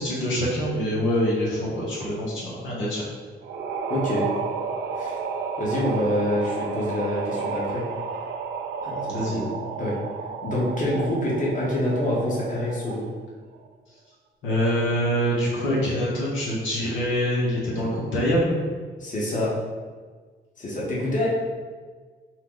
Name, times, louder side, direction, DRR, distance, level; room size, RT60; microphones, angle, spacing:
voice 1, 0.0-3.0 9.1-9.4 14.4-18.6, equal, 80° left, -5 dB, 1.1 m, -25 dB
sound 1, 3.4-13.2, right 5 dB, 60° right, 0.5 m, -32 dB
voice 2, 3.9-4.3 5.0-5.2 5.6-7.8 8.8-9.5 9.8-10.0 10.4-13.1 15.6-15.8 17.7-17.9 19.0-19.5 20.6-21.3, left 1 dB, 40° left, -5 dB, 1.3 m, -26 dB
4.6 x 2.3 x 3.8 m, 1.5 s
cardioid pair, 90°, 20 cm